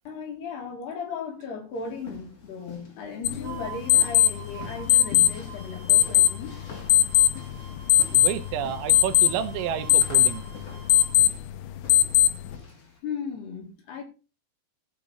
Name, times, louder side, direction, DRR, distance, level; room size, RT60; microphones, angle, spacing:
voice 1, 0.1-6.6 12.6-14.0, left 5 dB, 60° left, 3.9 m, -36 dB
sound 1, 1.7-13.0, left 4 dB, 40° left, 2.6 m, -47 dB
sound 2, 3.3-12.6, left 13 dB, 80° left, 2.7 m, -22 dB
sound 3, 3.4-11.1, right 7 dB, 70° right, 1.4 m, -47 dB
voice 2, 8.1-10.4, right 10 dB, 90° right, 3.7 m, -30 dB
15.0 x 6.0 x 4.2 m
omnidirectional pair, 5.8 m